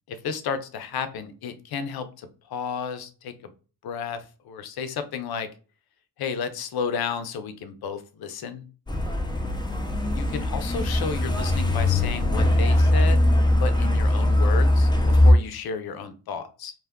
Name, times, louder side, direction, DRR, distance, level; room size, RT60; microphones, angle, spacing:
voice 1, 0.1-3.5 3.8-5.5 6.2-8.6 10.1-13.2 13.6-16.7, left 6 dB, 65° left, 10 dB, 0.7 m, -32 dB
Truck, 8.9-15.3, left 1 dB, 10° left, 0.6 m, -20 dB
2.4 x 2.2 x 3.6 m, 0.36 s
cardioid pair, 65°, 41 cm